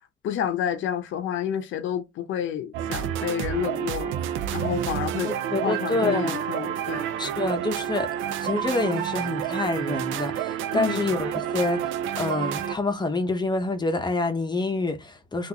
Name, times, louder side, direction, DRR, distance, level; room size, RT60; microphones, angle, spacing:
voice 1, 0.2-7.1 10.7-11.0, left 9 dB, 80° left, 0.6 m, -30 dB
sound 1, 2.7-12.8, right 10 dB, 85° right, 0.4 m, -29 dB
voice 2, 5.2-6.4 7.2-8.2 8.4-15.5, left 2 dB, 20° left, 0.7 m, -27 dB
3.7 x 2.4 x 2.8 m
cardioid pair, 90°, 20 cm